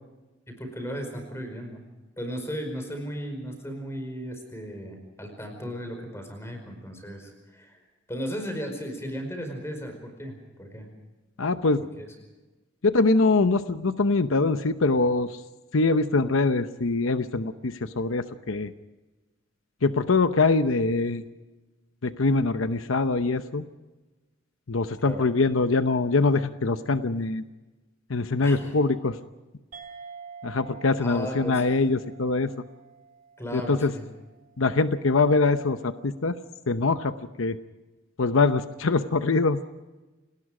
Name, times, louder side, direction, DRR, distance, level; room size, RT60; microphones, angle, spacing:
voice 1, 0.5-1.8 2.2-7.8 8.1-10.9 12.0-12.1 25.0-25.2 28.4-28.7 31.0-31.6 33.4-34.0, equal, 15° left, 5 dB, 5.0 m, -35 dB
voice 2, 11.4-11.8 12.8-15.4 15.7-18.7 19.8-21.2 22.0-23.6 24.7-27.4 28.1-29.1 30.4-32.5 33.5-33.9 34.6-36.4 36.7-37.6 38.2-39.6, left 3 dB, 80° left, 11 dB, 0.8 m, -23 dB
sound 1, 29.7-34.6, right 5 dB, 45° right, 3.2 m, -47 dB
29.0 x 19.0 x 5.0 m, 1.2 s
head